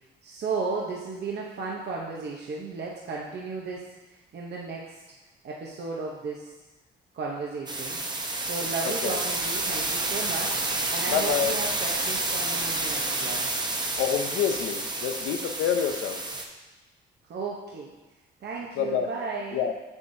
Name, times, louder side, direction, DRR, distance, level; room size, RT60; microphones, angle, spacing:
voice 1, 0.0-5.0 5.4-6.5 7.1-8.0 8.4-10.6 10.9-13.5 17.3-17.9 18.4-19.6, right 4 dB, 55° right, -3 dB, 0.9 m, -34 dB
sound 1, 7.7-16.4, right 2 dB, 20° right, 0.9 m, -29 dB
voice 2, 11.1-11.5 14.0-16.2 18.8-19.1 19.5-19.7, left 8 dB, 85° left, 5 dB, 0.7 m, -27 dB
7.1 x 7.0 x 2.7 m, 1.1 s
cardioid pair, 90°, 20 cm